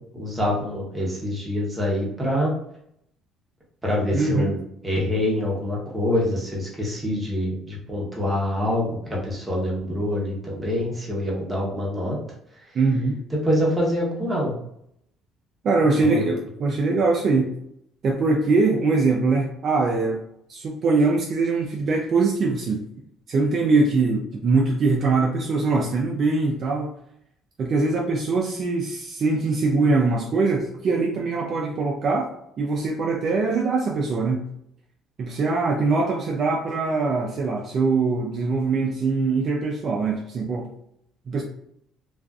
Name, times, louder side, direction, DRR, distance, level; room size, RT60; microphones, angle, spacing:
voice 1, 0.1-2.5 3.8-4.6 4.8-12.2 13.4-14.5 16.0-16.3, left 1 dB, 15° right, -4 dB, 0.9 m, -25 dB
voice 2, 4.1-4.5 12.7-13.2 15.6-17.5 18.0-20.2 20.5-22.8 23.3-26.9 27.6-32.3 32.6-34.4 35.2-40.7 41.3-41.4, right 3 dB, 45° right, -1 dB, 0.4 m, -22 dB
2.4 x 2.3 x 2.3 m, 0.74 s
cardioid pair, 110°, 0 cm